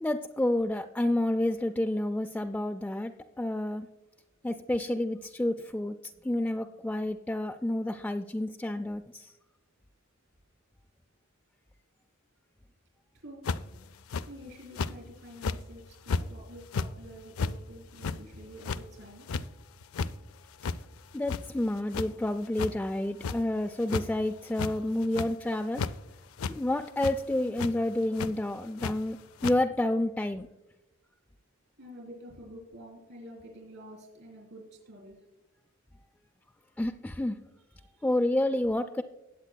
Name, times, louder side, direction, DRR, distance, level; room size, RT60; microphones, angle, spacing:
voice 1, 0.0-3.1 3.4-3.9 4.4-6.0 6.2-9.3 21.1-25.8 26.5-29.2 29.4-30.5 36.8-37.4 38.0-39.0, left 1 dB, 5° left, 4 dB, 0.3 m, -29 dB
sound 1, 13.4-13.7 14.1-14.3 14.7-14.9 15.4-15.6 16.1-16.2 16.6-16.9 17.4-17.5 18.0-18.2 18.6-18.8 19.3-19.5 19.8-20.1 20.6-20.8 21.1-21.7 21.9-22.1 22.6-22.7 23.2-23.4 23.8-24.0 24.5-24.7 25.0-25.3 25.7-25.9 26.4-26.5 27.0-27.2 27.6-27.7 28.1-28.3 28.8-28.9 29.4-29.6, left 4 dB, 80° left, 0.4 m, -32 dB
voice 2, 14.3-19.3 31.8-35.2 37.7-38.2, equal, 70° right, -1 dB, 3.7 m, -48 dB
18.5 x 8.3 x 2.2 m, 0.98 s
head